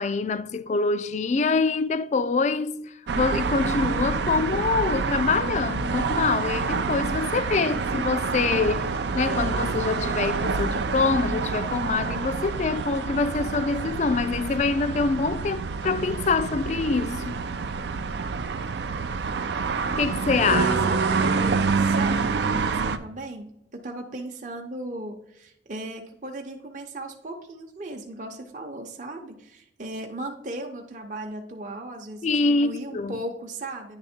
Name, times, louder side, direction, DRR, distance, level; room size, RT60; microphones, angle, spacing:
voice 1, 0.0-17.4 20.0-20.7 32.2-33.2, left 4 dB, 40° left, 0.3 m, -25 dB
sound 1, 3.1-23.0, right 4 dB, 65° right, 0.4 m, -27 dB
voice 2, 20.6-34.0, right 1 dB, 45° right, 0.8 m, -36 dB
9.8 x 3.5 x 4.3 m
head